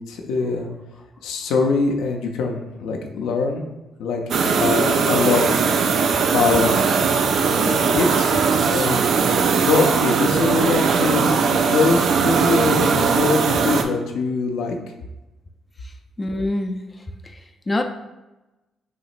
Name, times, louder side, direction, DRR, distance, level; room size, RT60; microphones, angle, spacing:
voice 1, 0.1-0.7 1.2-3.6 4.0-5.7 6.3-6.9 7.5-8.3 8.7-9.2 9.6-14.8, left 4 dB, 90° left, 2 dB, 0.5 m, -23 dB
sound 1, 4.3-13.8, right 5 dB, 65° right, 0.4 m, -19 dB
sound 2, 4.5-7.8 8.1-11.0, right 1 dB, 40° right, 1.5 m, -39 dB
voice 2, 9.2-9.5 15.8-16.8 17.2-17.8, left 2 dB, 25° left, 5 dB, 0.4 m, -27 dB
5.8 x 3.0 x 2.5 m, 1.0 s
cardioid pair, 90°, 0 cm